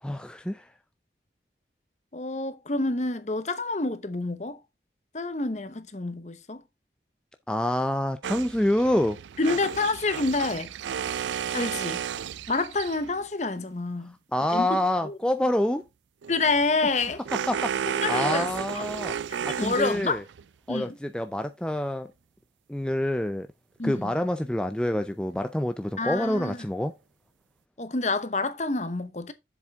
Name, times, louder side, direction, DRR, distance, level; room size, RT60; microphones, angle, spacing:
voice 1, 0.0-0.6 7.5-9.2 14.3-15.8 17.5-19.1 19.5-20.2 20.7-22.1 22.7-23.5 23.8-26.9, left 1 dB, 5° left, 0.4 m, -27 dB
voice 2, 2.1-4.6 5.1-6.6 9.4-10.7 11.5-12.0 12.5-14.2 14.5-15.2 16.3-17.2 17.8-18.5 18.7-18.8 19.3-20.2 20.7-21.0 23.8-24.2 26.0-26.6 27.8-29.3, left 3 dB, 40° left, 0.9 m, -28 dB
sound 1, 8.2-13.2 16.2-20.4, right 8 dB, 90° right, 0.4 m, -33 dB
7.3 x 7.3 x 3.5 m
head